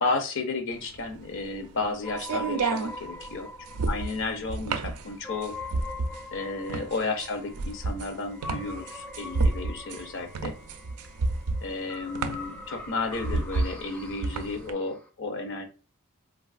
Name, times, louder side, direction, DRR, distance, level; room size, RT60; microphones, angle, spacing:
voice 1, 0.0-3.5 3.9-5.5 6.3-10.5 11.6-15.7, left 3 dB, 55° left, 6 dB, 0.6 m, -32 dB
sound 1, 0.8-14.7, right 3 dB, 80° right, 0.4 m, -31 dB
sound 2, 2.0-15.1, left 2 dB, 5° left, 0.4 m, -43 dB
3.2 x 2.3 x 2.3 m, 0.34 s
head